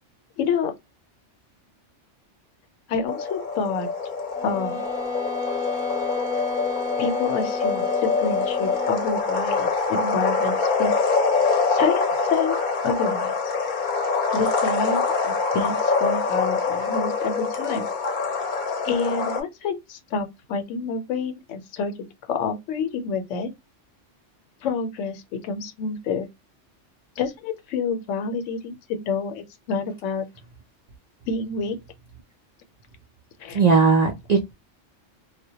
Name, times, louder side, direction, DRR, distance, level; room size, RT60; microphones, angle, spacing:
voice 1, 0.4-0.7 2.9-3.9 4.4-4.8 7.0-10.9 11.7-12.6 12.8-13.5 14.3-17.9 18.8-21.9 22.3-23.5 24.6-26.3 27.2-30.3 31.3-31.8 33.4-33.6, left 5 dB, 85° left, 1.0 m, -28 dB
sound 1, 3.1-19.4, left 4 dB, 50° left, 0.7 m, -25 dB
sound 2, 4.3-9.1, left 3 dB, 5° right, 0.6 m, -31 dB
voice 2, 33.5-34.5, right 4 dB, 70° right, 0.4 m, -18 dB
2.1 x 2.1 x 2.7 m
omnidirectional pair, 1.2 m